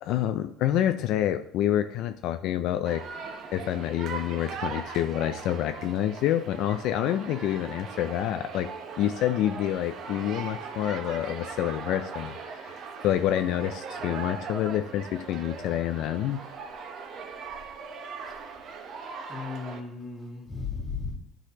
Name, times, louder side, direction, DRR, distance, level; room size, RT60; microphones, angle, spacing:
voice 1, 0.0-3.0 3.5-8.7 9.0-16.4, left 11 dB, 70° left, 8 dB, 0.4 m, -28 dB
sound 1, 2.8-19.8, right 5 dB, 55° right, 1.0 m, -40 dB
voice 2, 19.3-21.2, left 4 dB, 15° left, -2 dB, 2.2 m, -35 dB
11.5 x 4.0 x 3.0 m, 0.69 s
supercardioid pair, 100°, 0 cm